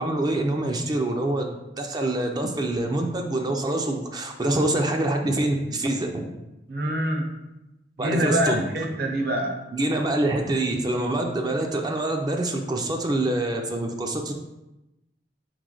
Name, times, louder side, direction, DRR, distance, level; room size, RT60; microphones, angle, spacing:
voice 1, 0.0-6.3 8.0-8.7 9.7-14.3, right 2 dB, 25° right, 3 dB, 0.4 m, -25 dB
voice 2, 6.7-7.5 8.0-9.6, equal, 60° right, 2 dB, 0.7 m, -26 dB
4.5 x 3.1 x 3.7 m, 0.96 s
head